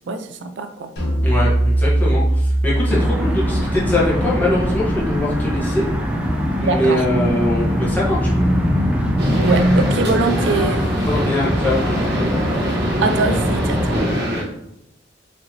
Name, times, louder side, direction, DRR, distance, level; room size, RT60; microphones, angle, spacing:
voice 1, 0.1-0.9 6.6-7.0 9.4-10.8 13.0-14.1, right 3 dB, 75° right, 8 dB, 0.4 m, -23 dB
sound 1, 1.0-6.4, right 1 dB, 60° left, 1.3 m, -21 dB
voice 2, 1.2-5.8 6.6-8.5 11.1-12.3, left 1 dB, 10° left, -7 dB, 1.0 m, -22 dB
sound 2, 2.9-14.0, equal, 5° right, 0.4 m, -22 dB
sound 3, 9.2-14.4, equal, 60° right, 1.1 m, -24 dB
4.3 x 2.9 x 2.7 m, 0.82 s
head